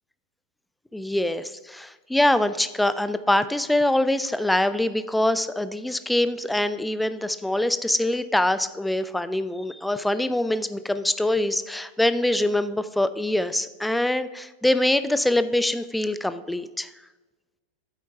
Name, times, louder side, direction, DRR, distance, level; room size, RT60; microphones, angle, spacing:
voice 1, 0.9-16.9, left 1 dB, 5° left, 13 dB, 0.4 m, -24 dB
9.1 x 8.3 x 3.5 m, 1.2 s
figure-of-eight pair, 90°, 0 cm